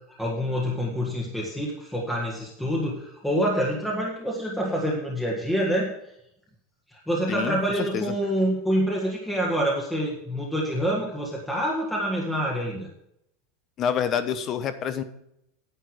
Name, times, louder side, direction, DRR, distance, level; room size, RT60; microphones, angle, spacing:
voice 1, 0.2-5.9 6.9-12.9, equal, 5° left, -3 dB, 1.6 m, -26 dB
voice 2, 7.3-7.6 7.9-8.0 13.8-15.0, left 8 dB, 25° left, 12 dB, 1.0 m, -27 dB
10.5 x 9.1 x 4.8 m, 0.76 s
supercardioid pair, 165°, 0 cm